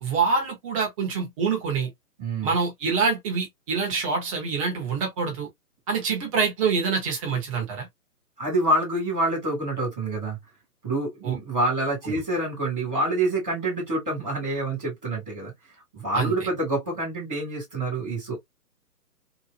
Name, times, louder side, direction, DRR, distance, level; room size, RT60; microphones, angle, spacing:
voice 1, 0.0-1.9 2.4-5.5 5.9-7.9 11.2-11.4 12.0-12.2 16.1-16.3, right 5 dB, 20° right, 1.0 m, -26 dB
voice 2, 2.2-2.5 8.4-10.4 10.8-15.5 15.9-18.3, right 2 dB, 5° right, 0.5 m, -27 dB
2.9 x 2.4 x 2.4 m
figure-of-eight pair, 130°, 47 cm